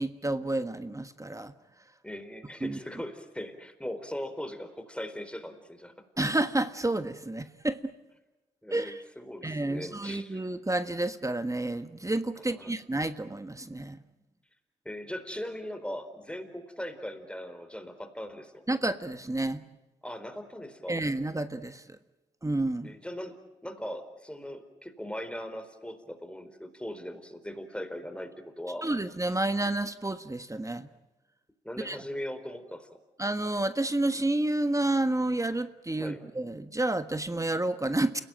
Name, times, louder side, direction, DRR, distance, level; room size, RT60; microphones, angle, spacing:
voice 1, 0.0-1.5 2.6-2.8 6.2-7.9 8.7-9.0 9.4-14.0 18.7-19.6 20.9-21.8 22.4-23.0 28.8-30.9 31.8-32.0 33.2-38.2, right 2 dB, 15° right, 10 dB, 1.5 m, -30 dB
voice 2, 2.0-5.9 8.6-10.4 12.4-12.7 14.8-18.6 20.0-21.0 22.8-23.3 23.6-28.9 31.6-32.9 35.9-36.2, equal, 5° left, 9 dB, 4.3 m, -39 dB
29.5 x 17.5 x 9.2 m, 1.1 s
hypercardioid pair, 40°, 18 cm